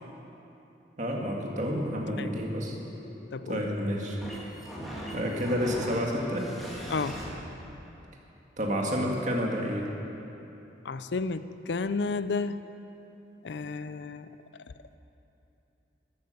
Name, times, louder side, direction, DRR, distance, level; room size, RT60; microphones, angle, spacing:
voice 1, 1.0-2.8 3.5-4.2 5.1-6.5 8.6-9.9, equal, 40° right, -1 dB, 2.0 m, -29 dB
sound 1, 1.4-7.3, equal, ahead, 2.3 m, -42 dB
voice 2, 3.3-3.6 6.9-7.2 10.8-12.6 13.4-14.3, left 4 dB, 75° left, 12 dB, 0.5 m, -32 dB
14.0 x 12.5 x 6.8 m, 3.0 s
head